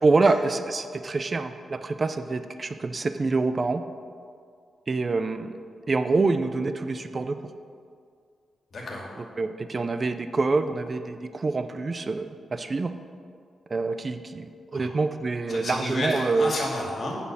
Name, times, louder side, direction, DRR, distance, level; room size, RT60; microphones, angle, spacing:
voice 1, 0.0-3.8 4.9-5.5 5.9-7.5 9.2-12.9 13.7-16.5, right 3 dB, 40° right, 10 dB, 0.4 m, -26 dB
voice 2, 8.7-9.1 14.7-14.9 15.5-17.2, left 1 dB, 55° left, -2 dB, 2.3 m, -31 dB
9.3 x 4.3 x 7.2 m, 2.2 s
cardioid pair, 65°, 0 cm